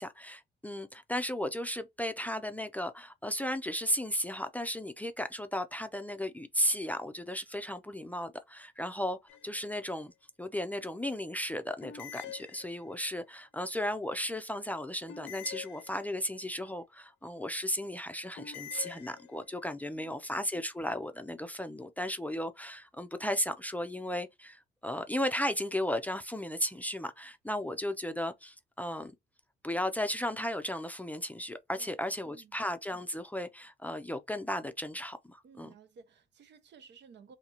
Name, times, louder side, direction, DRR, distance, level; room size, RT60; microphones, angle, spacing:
voice 1, 0.0-9.2 9.4-10.1 10.4-29.1 29.6-35.7, equal, 10° left, 0.5 m, -35 dB
sound 1, 9.3-9.9 11.8-13.1 15.1-16.4 18.4-19.6, left 10 dB, 90° left, 0.7 m, -46 dB
voice 2, 32.3-32.6 35.4-37.4, right 5 dB, 60° right, 0.8 m, -56 dB
3.8 x 2.8 x 2.9 m
cardioid pair, 90°, 20 cm